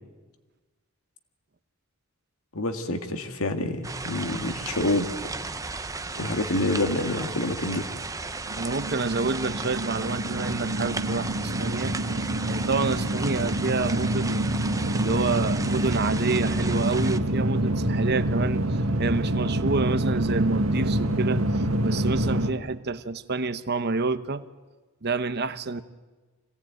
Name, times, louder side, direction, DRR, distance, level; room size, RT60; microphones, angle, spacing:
voice 1, 2.5-5.1 6.2-7.9, left 2 dB, 70° left, 7 dB, 2.0 m, -27 dB
sound 1, 3.8-17.2, right 3 dB, 15° right, 0.8 m, -35 dB
sound 2, 8.5-22.5, right 1 dB, 65° right, 1.9 m, -27 dB
voice 2, 8.6-12.0 12.5-14.5 14.9-18.7 19.0-24.5 25.0-25.8, right 3 dB, 50° right, 11 dB, 0.9 m, -28 dB
25.0 x 18.0 x 9.1 m, 1.2 s
head